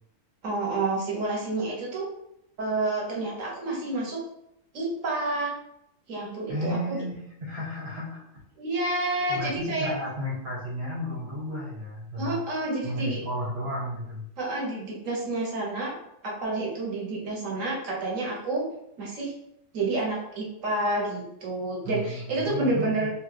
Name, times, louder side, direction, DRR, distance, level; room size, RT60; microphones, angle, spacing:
voice 1, 0.4-2.1 2.6-4.2 4.7-5.5 6.1-7.0 8.6-9.9 12.2-13.2 14.4-15.9 16.2-18.7 19.0-19.3 19.7-23.1, right 2 dB, 65° right, -3 dB, 1.3 m, -29 dB
voice 2, 6.5-8.2 9.3-12.4 12.8-14.3 21.8-23.1, equal, 40° right, -5 dB, 1.3 m, -33 dB
3.0 x 2.3 x 3.3 m, 0.78 s
omnidirectional pair, 1.5 m